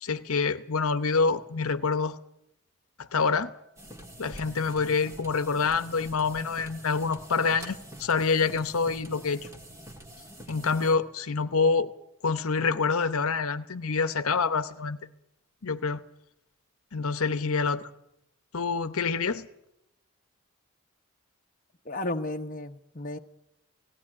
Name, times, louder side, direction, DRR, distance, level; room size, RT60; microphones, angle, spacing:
voice 1, 0.0-2.2 3.0-3.5 4.2-9.5 10.5-11.9 12.2-15.0 15.6-16.0 16.9-17.9 18.5-19.5, left 4 dB, 80° left, 11 dB, 0.9 m, -26 dB
sound 1, 3.8-11.0, right 1 dB, 15° right, 1.7 m, -46 dB
voice 2, 21.8-23.2, left 2 dB, 40° left, 5 dB, 0.9 m, -33 dB
18.0 x 15.5 x 9.7 m, 0.82 s
head